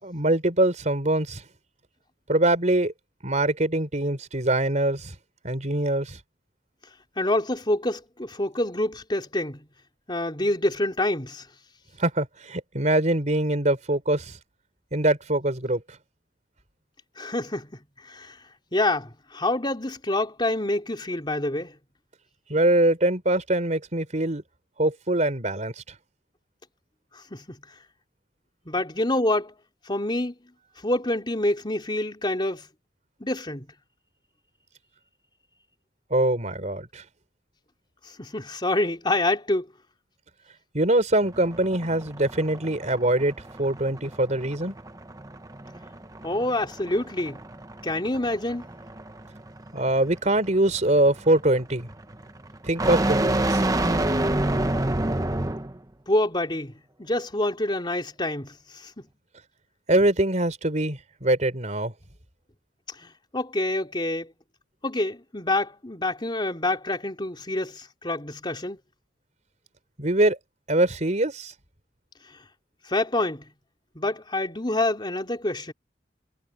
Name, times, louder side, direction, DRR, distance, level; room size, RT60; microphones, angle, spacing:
voice 1, 0.0-1.4 2.3-2.9 3.2-5.1 5.4-6.2 12.0-14.4 14.9-15.8 22.5-24.4 24.8-25.8 36.1-37.0 40.7-44.7 49.7-51.9 52.6-53.6 59.9-61.9 70.0-70.4 70.7-71.5, right 1 dB, 40° right, 4.2 m, -23 dB
voice 2, 7.2-9.6 10.1-11.4 17.2-18.4 18.7-21.7 27.1-27.6 28.6-29.5 29.8-30.3 30.8-32.7 33.2-33.7 38.2-39.7 46.2-47.4 47.8-48.7 56.1-56.7 57.0-59.1 63.0-64.3 64.8-68.8 72.9-73.5 73.9-75.7, left 1 dB, 25° left, 3.5 m, -27 dB
sound 1, 41.2-55.8, right 1 dB, 20° right, 1.1 m, -29 dB
head